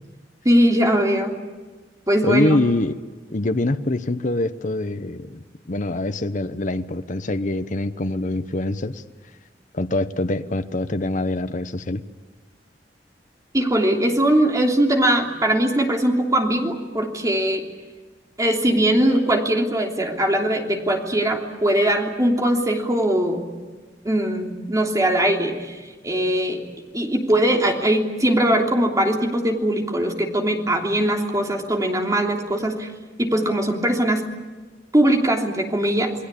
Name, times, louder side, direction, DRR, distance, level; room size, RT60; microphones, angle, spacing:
voice 1, 0.4-1.4 2.1-2.6 13.5-17.6 18.4-23.5 24.0-26.6 26.9-32.9 33.2-34.3 34.9-36.1, right 1 dB, 20° right, 2 dB, 3.2 m, -21 dB
voice 2, 2.2-3.0 3.3-9.0 9.7-12.0, left 2 dB, 45° left, 10 dB, 0.9 m, -24 dB
29.0 x 21.0 x 8.5 m, 1.3 s
head